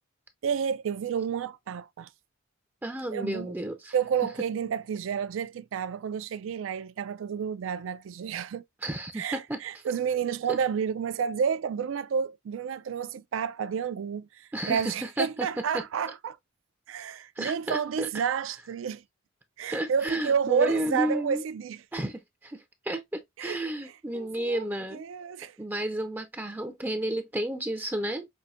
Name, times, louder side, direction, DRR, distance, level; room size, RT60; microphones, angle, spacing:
voice 1, 0.4-2.1 3.1-3.5 3.9-8.6 9.1-16.4 16.9-19.0 19.6-21.8 23.4-23.6 24.1-25.6, right 7 dB, 75° right, 0.3 m, -30 dB
voice 2, 2.8-3.9 8.8-9.8 14.5-15.5 15.7-15.8 17.4-18.1 19.7-21.4 21.9-25.0 25.6-28.3, right 1 dB, 10° right, 0.4 m, -32 dB
5.4 x 2.6 x 2.4 m
head